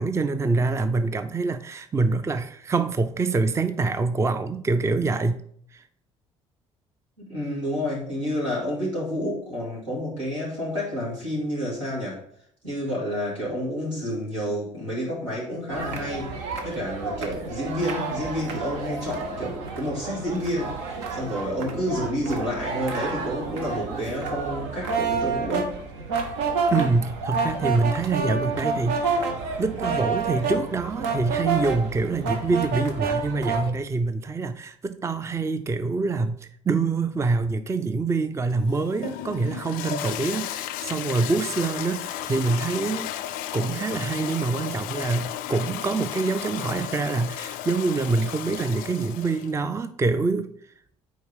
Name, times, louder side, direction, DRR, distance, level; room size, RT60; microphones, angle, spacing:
voice 1, 0.0-5.4 5.7-5.8 26.7-29.3 29.6-43.1 43.5-50.5, right 3 dB, 20° right, 10 dB, 0.4 m, -25 dB
voice 2, 7.3-12.2 12.6-16.3 16.6-20.7 21.1-25.7, equal, 90° right, -7 dB, 2.6 m, -29 dB
sound 1, 15.7-33.7, right 4 dB, 75° right, 0.8 m, -29 dB
Toilet flush, 38.5-49.5, left 11 dB, 65° left, 0.4 m, -34 dB
4.7 x 4.6 x 5.2 m, 0.64 s
hypercardioid pair, 55°, 16 cm